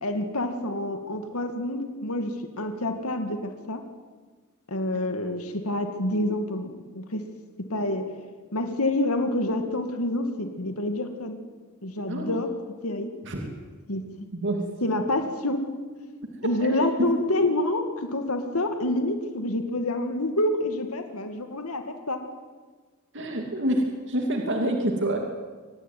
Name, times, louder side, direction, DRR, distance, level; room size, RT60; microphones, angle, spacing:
voice 1, 0.0-3.4 3.7-3.8 4.7-7.2 7.7-8.0 8.5-11.4 11.8-12.5 12.8-13.1 13.9-14.0 14.8-15.7 16.4-22.2, left 1 dB, 75° left, 6 dB, 2.3 m, -27 dB
voice 2, 12.1-12.4 13.2-13.5 14.3-14.6 16.6-16.9 23.1-25.2, right 1 dB, 55° right, 2 dB, 2.8 m, -27 dB
24.0 x 19.5 x 9.4 m, 1.4 s
head